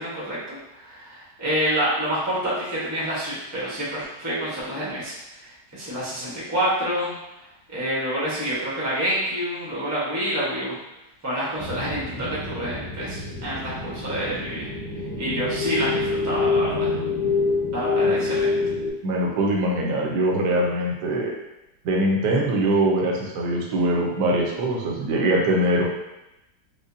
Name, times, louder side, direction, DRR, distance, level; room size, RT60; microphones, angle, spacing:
voice 1, 0.0-7.1 7.7-10.8 11.2-14.7 15.2-16.9 17.7-18.7, equal, 15° right, -7 dB, 0.6 m, -28 dB
sound 1, 11.6-18.9, left 4 dB, 85° left, 1.6 m, -26 dB
voice 2, 19.0-21.3 21.8-25.9, right 1 dB, 75° right, -2 dB, 1.2 m, -22 dB
4.9 x 2.1 x 2.6 m, 0.93 s
omnidirectional pair, 1.9 m